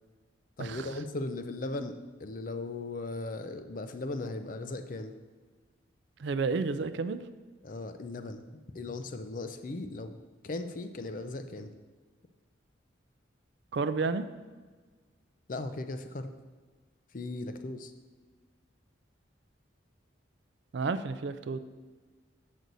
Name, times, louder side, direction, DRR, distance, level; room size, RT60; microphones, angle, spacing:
voice 1, 0.6-5.1 7.6-10.2 10.4-11.7 15.5-16.3 17.1-17.9, left 2 dB, 45° left, 8 dB, 0.5 m, -37 dB
voice 2, 6.2-7.2 13.7-14.3 20.7-21.6, right 4 dB, 60° right, 12 dB, 0.4 m, -31 dB
7.9 x 6.2 x 4.0 m, 1.4 s
head